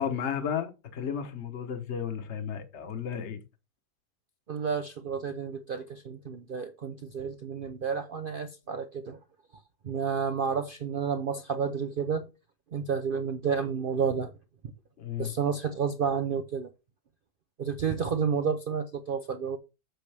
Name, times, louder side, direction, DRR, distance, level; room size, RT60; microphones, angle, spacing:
voice 1, 0.0-3.4 15.0-15.3, left 8 dB, 45° left, 1.2 m, -33 dB
voice 2, 4.5-9.2 9.8-12.3 12.7-14.3 15.2-16.7 17.6-19.6, right 6 dB, 75° right, 0.5 m, -30 dB
7.9 x 6.6 x 3.4 m
omnidirectional pair, 1.8 m